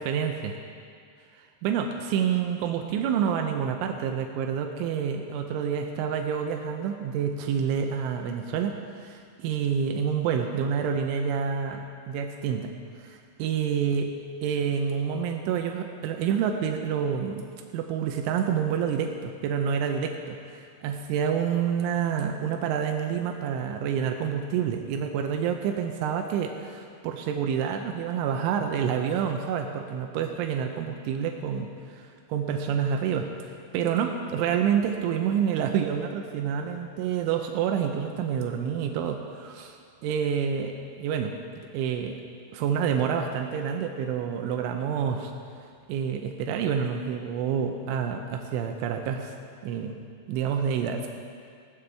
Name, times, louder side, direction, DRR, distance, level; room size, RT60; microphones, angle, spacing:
voice 1, 0.0-0.5 1.6-12.7 13.0-14.1 14.4-17.5 17.7-33.3 33.7-39.8 40.0-42.2 42.5-45.3 45.9-49.3 49.6-50.0 50.3-51.1, right 7 dB, 85° right, 4 dB, 3.2 m, -28 dB
20.0 x 16.0 x 3.4 m, 2.2 s
omnidirectional pair, 5.4 m